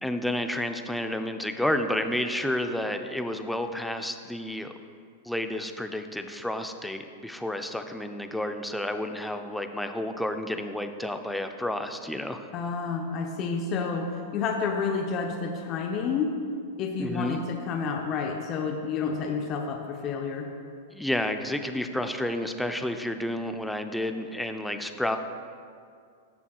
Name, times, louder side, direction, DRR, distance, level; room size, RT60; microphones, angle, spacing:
voice 1, 0.0-4.7 5.2-12.5 17.0-17.4 20.9-25.2, left 1 dB, 5° left, 6 dB, 0.6 m, -30 dB
voice 2, 12.5-16.3 16.8-20.5, left 5 dB, 40° left, 2 dB, 0.8 m, -30 dB
15.0 x 7.0 x 2.4 m, 2.2 s
hypercardioid pair, 100°, 0 cm